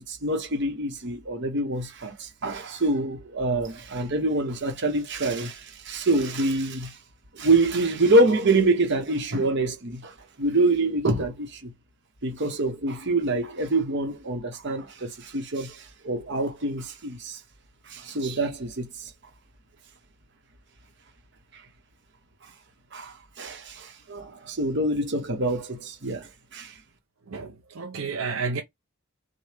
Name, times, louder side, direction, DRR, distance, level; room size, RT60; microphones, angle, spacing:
voice 1, 0.1-6.9 7.3-11.7 12.2-17.4 17.9-19.1 22.9-26.7, right 2 dB, 55° right, 1.0 m, -26 dB
voice 2, 27.3-28.6, right 4 dB, 80° right, 0.7 m, -31 dB
6.4 x 2.3 x 3.3 m
head